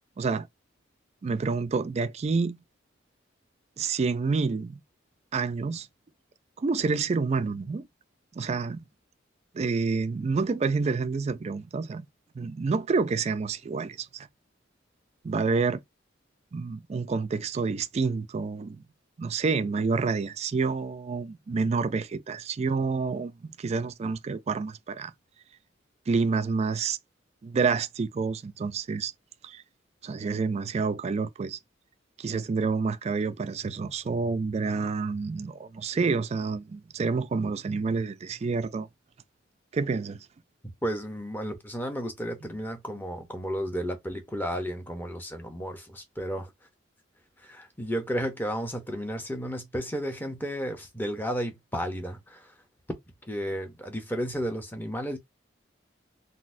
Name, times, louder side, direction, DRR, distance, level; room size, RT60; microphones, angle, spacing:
voice 1, 1.2-2.6 3.8-4.8 5.3-5.9 6.6-7.9 8.3-8.8 9.5-12.1 12.4-14.3 15.2-15.8 16.5-18.8 19.2-25.1 26.1-27.0 27.4-29.1 29.4-29.6 30.0-31.6 32.2-38.9 39.7-40.2, right 4 dB, 35° right, 0.3 m, -28 dB
voice 2, 40.8-46.5 47.4-52.5 53.2-55.2, equal, 10° left, 0.7 m, -33 dB
3.9 x 2.1 x 2.6 m
head